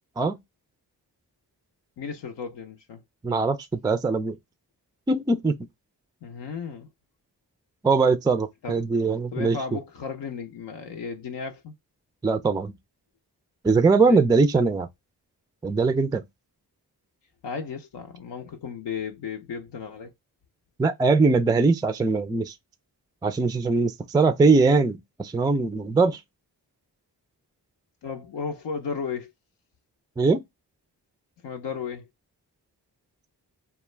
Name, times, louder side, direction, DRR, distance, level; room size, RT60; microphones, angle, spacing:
voice 1, 2.0-3.0 6.2-6.9 8.6-8.8 9.3-11.7 14.0-14.2 17.4-20.1 28.0-29.3 31.4-32.1, left 6 dB, 70° left, 0.6 m, -34 dB
voice 2, 3.2-4.4 5.1-5.6 7.8-9.6 12.2-12.7 13.6-14.9 15.6-16.2 20.8-22.6 23.2-26.2 30.2-30.4, right 4 dB, 10° right, 0.3 m, -21 dB
2.3 x 2.1 x 3.1 m
cardioid pair, 45°, 43 cm